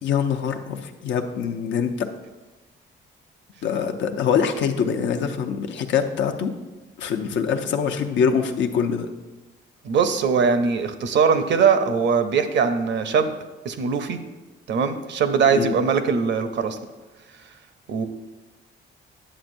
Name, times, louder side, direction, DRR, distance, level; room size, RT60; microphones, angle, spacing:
voice 1, 0.0-2.1 3.6-6.5 7.0-9.1 15.6-15.7, left 7 dB, 70° left, 5 dB, 0.7 m, -24 dB
voice 2, 9.8-13.3 13.6-14.2 14.7-16.8 17.9-18.1, right 6 dB, 65° right, 9 dB, 0.7 m, -21 dB
10.0 x 7.3 x 2.6 m, 1.1 s
cardioid pair, 90°, 20 cm